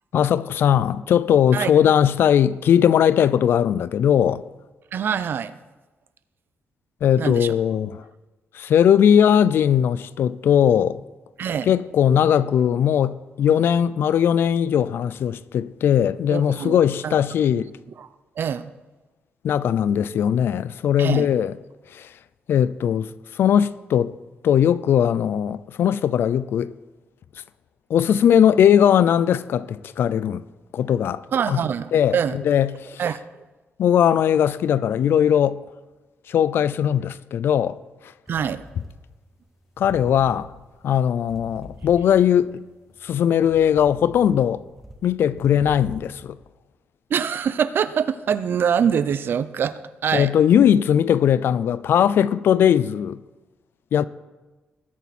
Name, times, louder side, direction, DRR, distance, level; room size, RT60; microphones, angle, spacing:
voice 1, 0.1-4.4 7.0-8.0 8.5-11.0 11.6-17.7 19.4-21.5 21.9-22.1 22.5-23.1 23.3-24.1 24.4-26.7 27.9-30.4 30.7-31.2 31.5-31.6 31.9-33.0 33.8-35.6 36.3-37.8 39.8-40.5 40.8-42.5 43.0-44.6 45.0-46.4 50.1-53.2 53.9-54.0, left 9 dB, 70° left, 0.5 m, -19 dB
voice 2, 4.9-5.5 7.2-7.5 11.4-11.7 16.3-17.2 17.5-17.7 18.0-18.1 18.4-18.7 21.0-21.3 31.3-32.4 33.0-33.2 38.3-38.6 47.1-50.3, right 7 dB, 65° right, 0.7 m, -24 dB
sound 1, 38.3-39.5 39.7-42.5 42.9-46.2, equal, 5° right, 2.7 m, -43 dB
20.0 x 9.1 x 4.3 m
cardioid pair, 75°, 4 cm